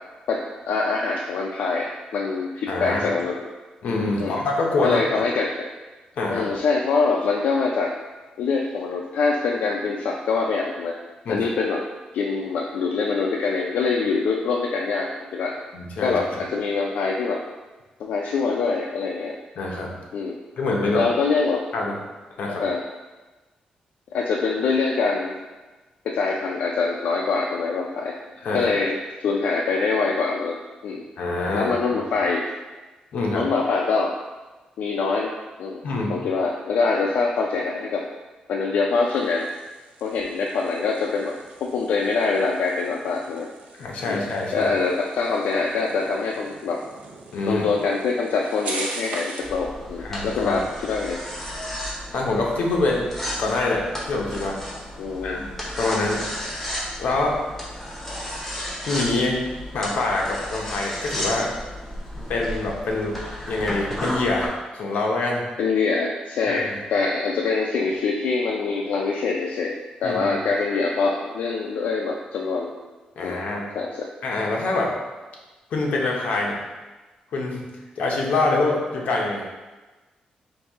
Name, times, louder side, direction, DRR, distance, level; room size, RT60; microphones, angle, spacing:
voice 1, 0.3-3.4 4.2-4.4 4.8-5.5 6.3-7.9 8.4-10.9 11.3-11.8 12.1-15.5 16.0-17.4 18.0-19.3 20.1-20.4 20.9-21.6 22.6-22.8 24.1-25.4 26.0-28.1 28.5-30.6 30.8-31.0 31.5-32.4 33.3-34.1 34.8-35.3 35.6-35.8 36.1-38.0 38.5-39.5 40.0-43.5 44.1-44.2 44.5-46.8 47.5-51.2 55.0-55.4 65.6-72.7 73.2-73.4 73.8-73.9, left 4 dB, 85° left, 0 dB, 0.3 m, -24 dB
voice 2, 2.7-3.1 3.8-5.2 6.2-6.5 11.2-11.5 15.7-16.2 19.6-19.9 20.6-21.0 21.7-22.0 22.4-22.6 28.4-28.7 31.2-31.7 33.1-33.5 35.8-36.2 43.8-44.7 47.3-47.7 50.0-50.6 52.1-53.1 53.4-54.6 55.2-56.2 57.0-57.4 58.8-59.4 59.7-61.5 62.3-63.2 63.5-65.5 66.5-66.8 70.0-70.4 73.2-73.8 74.2-74.9 75.7-76.6 77.3-77.7 78.0-79.5, left 2 dB, 70° left, -1 dB, 0.8 m, -25 dB
sound 1, 38.9-49.6, right 3 dB, 75° right, 0.6 m, -40 dB
sound 2, 49.4-64.5, equal, 10° left, 0.7 m, -33 dB
4.6 x 2.6 x 3.5 m, 1.2 s
wide cardioid pair, 175°, 3 cm